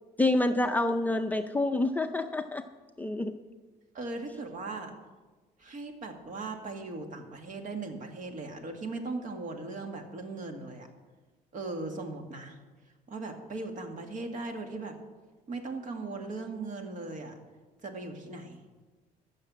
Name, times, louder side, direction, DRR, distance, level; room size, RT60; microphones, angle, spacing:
voice 1, 0.2-2.6 3.0-3.4, left 2 dB, 10° left, 6 dB, 0.5 m, -27 dB
voice 2, 3.9-4.9 5.6-10.9 11.5-12.6 13.1-15.0 15.5-17.4 17.8-18.6, right 3 dB, 50° right, 4 dB, 2.0 m, -38 dB
13.5 x 6.6 x 7.5 m, 1.3 s
cardioid pair, 110°, 17 cm